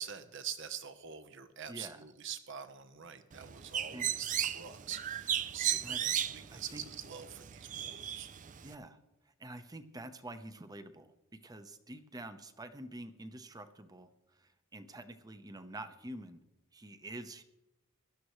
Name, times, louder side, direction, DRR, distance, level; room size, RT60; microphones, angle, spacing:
voice 1, 0.0-4.3 4.5-8.3, right 8 dB, 60° right, 10 dB, 1.0 m, -44 dB
voice 2, 1.7-2.0 3.9-4.1 5.8-6.0 6.5-6.8 8.6-9.0 9.4-16.4 16.7-17.4, right 1 dB, 20° right, 9 dB, 0.8 m, -47 dB
Bird, 3.3-8.7, right 10 dB, 40° right, 0.5 m, -36 dB
17.5 x 12.0 x 3.2 m, 0.94 s
head